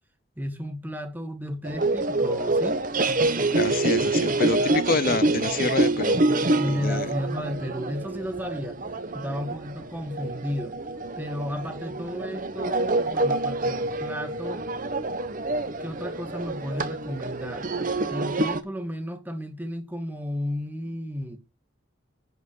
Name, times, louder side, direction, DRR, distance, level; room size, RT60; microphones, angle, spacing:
voice 1, 0.4-2.8 6.6-8.8 9.1-10.8 11.2-14.7 15.8-17.7 18.1-21.4, equal, 10° right, 1.6 m, -33 dB
sound 1, 1.6-18.6, right 2 dB, 40° right, 1.1 m, -26 dB
voice 2, 3.5-6.2 6.7-7.1, left 4 dB, 45° left, 0.5 m, -27 dB
11.0 x 5.3 x 6.2 m
head